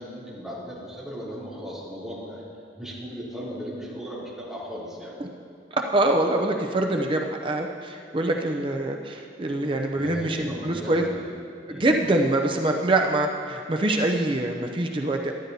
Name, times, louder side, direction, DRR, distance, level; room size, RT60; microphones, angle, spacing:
voice 1, 0.0-2.4 2.7-5.1 9.9-11.2 11.7-11.9, equal, ahead, -10 dB, 2.9 m, -37 dB
voice 2, 5.7-11.0 11.7-15.3, right 2 dB, 25° right, 3 dB, 0.5 m, -24 dB
13.0 x 12.0 x 2.7 m, 2.4 s
head